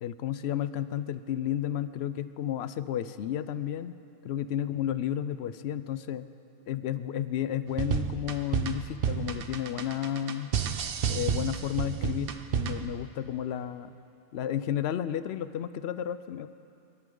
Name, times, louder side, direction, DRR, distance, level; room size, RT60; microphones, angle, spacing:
voice 1, 0.0-4.0 4.3-6.3 6.7-10.5 11.1-13.9 14.3-16.5, left 10 dB, 70° left, 13 dB, 0.8 m, -32 dB
sound 1, 7.7-13.0, right 8 dB, 55° right, 0.8 m, -30 dB
26.0 x 12.5 x 3.8 m, 2.7 s
omnidirectional pair, 1.2 m